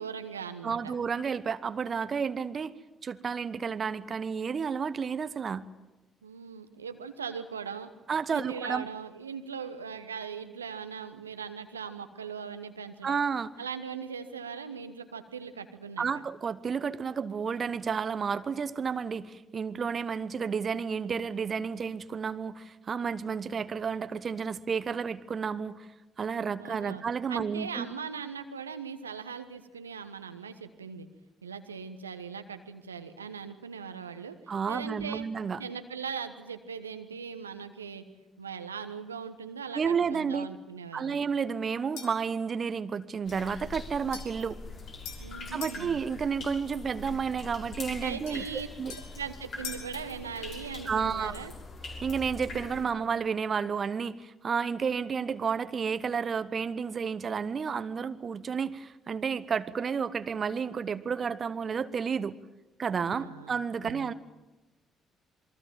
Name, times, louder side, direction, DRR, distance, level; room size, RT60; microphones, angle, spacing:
voice 1, 0.0-0.9 6.2-7.9 8.3-13.2 13.6-16.0 26.6-27.0 27.3-31.1 31.4-34.4 34.7-35.3 35.6-38.0 38.4-41.2 45.2-46.0 48.0-48.7 49.1-51.5 63.1-63.5 63.8-64.1, right 6 dB, 85° right, 9 dB, 1.1 m, -40 dB
voice 2, 0.6-2.7 3.0-5.7 8.1-8.9 13.0-13.5 16.0-25.9 26.2-27.9 34.5-35.6 39.7-40.5 40.9-44.6 45.5-48.4 48.8-48.9 50.9-51.4 52.0-62.4 62.8-64.1, right 6 dB, 40° right, 14 dB, 1.1 m, -31 dB
sound 1, 42.0-42.3 44.1-45.9 48.3-50.0, left 7 dB, 70° left, 3.5 m, -44 dB
sound 2, 43.3-52.8, left 3 dB, 50° left, 5.7 m, -43 dB
27.5 x 22.0 x 7.4 m, 1.1 s
figure-of-eight pair, 45°, 0 cm